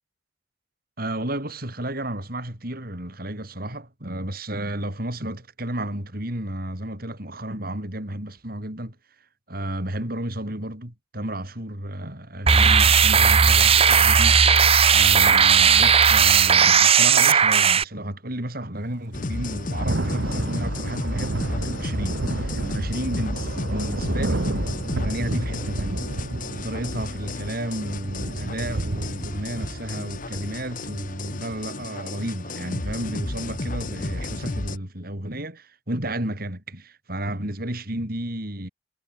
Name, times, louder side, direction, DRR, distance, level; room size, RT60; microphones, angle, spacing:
voice 1, 1.0-9.0 9.5-14.4 14.9-24.5 25.0-26.1 26.6-38.7, right 1 dB, 50° right, 5.8 m, -32 dB
sound 1, 12.5-17.8, right 7 dB, 30° right, 0.9 m, -16 dB
sound 2, 19.1-34.8, left 2 dB, 45° left, 1.3 m, -32 dB
Thunder / Rain, 19.3-31.7, right 2 dB, 65° right, 1.3 m, -31 dB
head